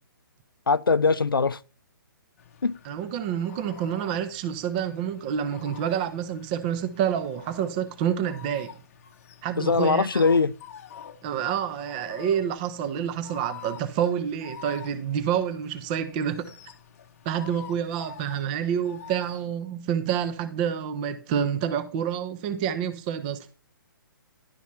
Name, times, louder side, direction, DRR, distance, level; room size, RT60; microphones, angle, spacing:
voice 1, 0.7-1.6 2.6-2.7 9.6-10.5, left 4 dB, 75° left, 0.4 m, -21 dB
sound 1, 2.4-19.5, left 9 dB, 40° left, 0.7 m, -47 dB
voice 2, 2.8-8.7 9.4-10.2 11.2-16.5 17.2-23.5, right 9 dB, 25° right, 0.6 m, -28 dB
11.0 x 4.1 x 5.7 m
figure-of-eight pair, 130°, 12 cm